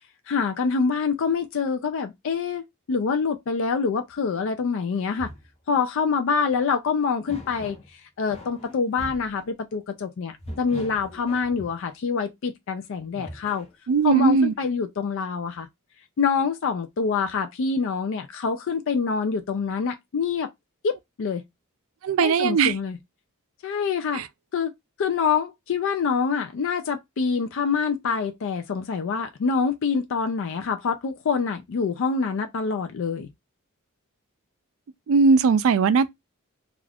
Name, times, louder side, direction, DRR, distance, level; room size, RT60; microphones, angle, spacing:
voice 1, 0.3-5.3 5.7-13.7 14.0-15.7 16.2-20.5 20.8-21.4 22.2-23.0 23.6-24.2 24.5-24.7 25.0-33.3, left 5 dB, 60° left, 0.4 m, -26 dB
sound 1, 4.9-5.5 6.5-6.6 7.3-7.9 8.3-9.4 10.4-11.9 13.0-13.7, left 1 dB, 30° left, 0.8 m, -41 dB
voice 2, 13.9-14.5 22.0-22.8 24.1-24.3 35.1-36.1, right 5 dB, 65° right, 0.4 m, -19 dB
2.4 x 2.3 x 3.3 m
head